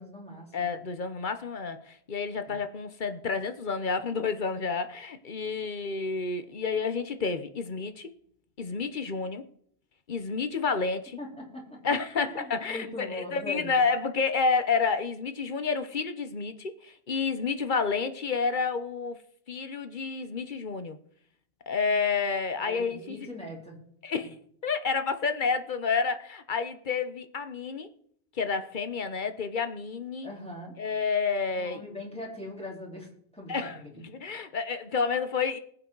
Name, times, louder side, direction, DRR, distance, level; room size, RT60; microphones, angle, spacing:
voice 1, 0.0-0.8 2.4-2.6 11.2-11.8 12.3-13.8 22.6-24.3 30.2-30.7 31.6-33.1 33.3-33.9, left 1 dB, 5° left, 3.8 m, -41 dB
voice 2, 0.5-8.1 8.6-9.4 10.1-11.2 11.8-19.2 19.5-21.0 21.7-23.3 24.0-24.4 24.6-27.9 28.3-30.3 30.8-31.8 33.5-33.8 34.2-35.6, left 5 dB, 50° left, 1.0 m, -30 dB
20.0 x 7.9 x 4.0 m
omnidirectional pair, 1.1 m